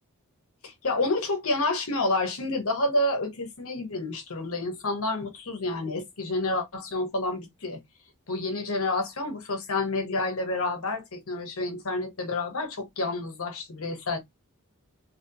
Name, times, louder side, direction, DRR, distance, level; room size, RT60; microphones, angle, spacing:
voice 1, 0.6-7.8 8.3-14.2, left 2 dB, 65° left, 1.1 m, -29 dB
3.0 x 2.9 x 2.7 m
head